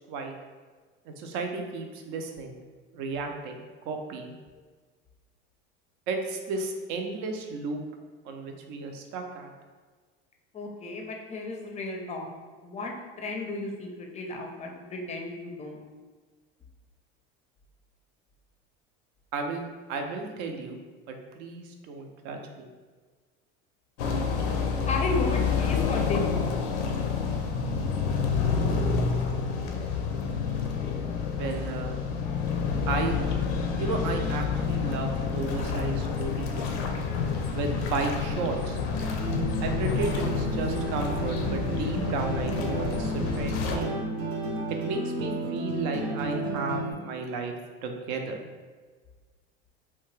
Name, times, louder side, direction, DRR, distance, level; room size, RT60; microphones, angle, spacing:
voice 1, 1.1-2.6 2.9-4.4 6.1-7.8 8.2-9.5 19.3-20.8 21.1-22.7 31.3-32.0 32.9-33.2 33.7-36.6 37.5-38.8 39.6-44.0 44.7-47.5 47.8-48.5, right 3 dB, 65° right, 4 dB, 0.5 m, -33 dB
voice 2, 10.5-12.3 12.6-15.8 24.8-26.4, left 2 dB, 20° left, 1 dB, 0.4 m, -33 dB
sound 1, 24.0-43.8, left 5 dB, 85° left, 0.5 m, -28 dB
sound 2, 38.9-46.9, right 2 dB, 85° right, 0.9 m, -32 dB
2.7 x 2.2 x 3.1 m, 1.4 s
supercardioid pair, 100°, 31 cm